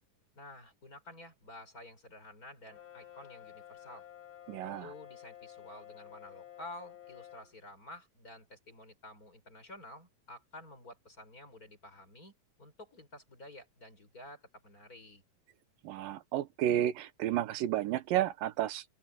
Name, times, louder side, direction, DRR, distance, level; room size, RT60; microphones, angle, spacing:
voice 1, 0.4-4.1 4.6-12.3 12.6-15.2, left 1 dB, 25° left, 5.9 m, -51 dB
Brass instrument, 2.7-7.6, left 12 dB, 45° left, 5.5 m, -52 dB
voice 2, 4.5-4.9 15.8-18.9, right 12 dB, 85° right, 2.6 m, -31 dB
open air
omnidirectional pair, 3.9 m